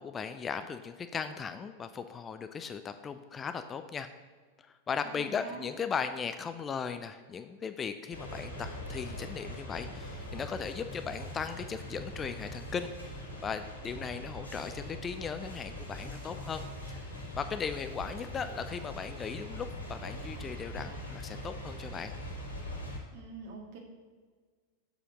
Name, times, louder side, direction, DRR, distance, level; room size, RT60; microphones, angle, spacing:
voice 1, 0.0-4.1 4.9-12.9 13.4-16.6 16.9-17.0 17.3-22.1, left 6 dB, 20° left, 9 dB, 0.4 m, -37 dB
voice 2, 5.0-5.6 23.1-23.8, right 3 dB, 50° right, 1 dB, 1.7 m, -45 dB
sound 1, 8.1-23.0, equal, 85° left, 2.0 m, -42 dB
7.0 x 5.1 x 6.1 m, 1.5 s
figure-of-eight pair, 90°, 0 cm